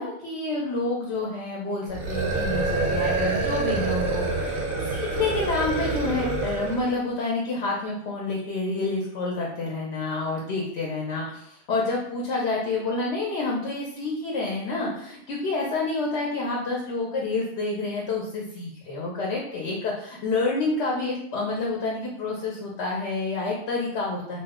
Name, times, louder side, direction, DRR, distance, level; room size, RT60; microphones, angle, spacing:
voice 1, 0.0-24.4, left 3 dB, 75° left, -2 dB, 0.9 m, -28 dB
sound 1, 1.9-6.9, right 3 dB, 60° right, 0.7 m, -27 dB
2.7 x 2.0 x 3.5 m, 0.70 s
omnidirectional pair, 1.2 m